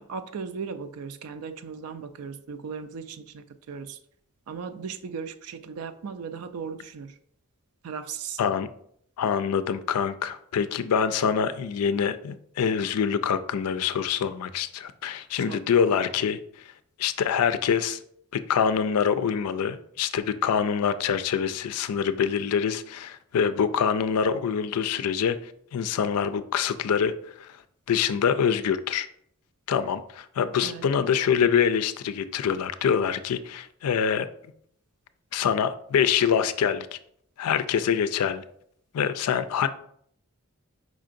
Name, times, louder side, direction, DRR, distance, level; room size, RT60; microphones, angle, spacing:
voice 1, 0.0-4.0 4.5-7.2 7.8-8.4 15.4-15.6 30.6-30.9, right 6 dB, 80° right, 9 dB, 0.4 m, -37 dB
voice 2, 8.4-8.7 9.2-16.4 17.0-18.0 18.3-25.4 25.7-27.1 27.4-27.5 27.9-29.1 29.7-34.3 35.3-37.0 37.4-38.4 38.9-39.7, left 7 dB, 90° left, 12 dB, 0.4 m, -25 dB
5.0 x 3.7 x 2.5 m, 0.67 s
head